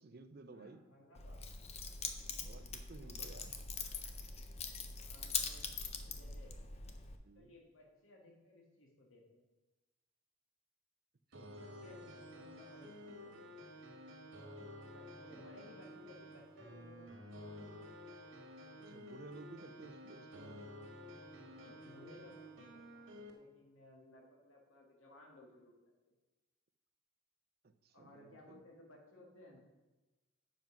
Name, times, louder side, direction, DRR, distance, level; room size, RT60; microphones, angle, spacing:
voice 1, 0.0-0.9 2.4-3.6 7.2-7.5 11.3-12.2 15.3-15.4 18.8-20.7 27.6-28.6, right 3 dB, 50° right, 10 dB, 0.5 m, -55 dB
voice 2, 0.5-1.4 5.0-6.5 7.3-9.4 11.5-13.9 14.9-18.2 21.5-25.8 27.9-29.6, left 1 dB, 80° left, 0 dB, 1.6 m, -60 dB
Keys jangling, 1.1-7.2, left 5 dB, 30° left, 0.6 m, -43 dB
sound 1, 11.3-23.3, equal, 75° right, 1.7 m, -52 dB
7.5 x 5.3 x 6.0 m, 1.1 s
head